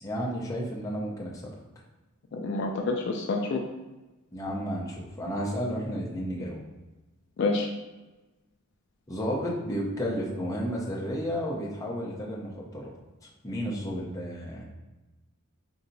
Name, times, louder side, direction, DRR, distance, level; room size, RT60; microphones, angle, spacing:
voice 1, 0.0-1.4 4.3-6.6 9.1-12.9 13.2-14.7, equal, 15° left, -4 dB, 0.6 m, -32 dB
voice 2, 2.3-3.6 7.4-7.7, left 3 dB, 50° left, 1 dB, 0.3 m, -28 dB
5.3 x 2.7 x 2.7 m, 1.1 s
head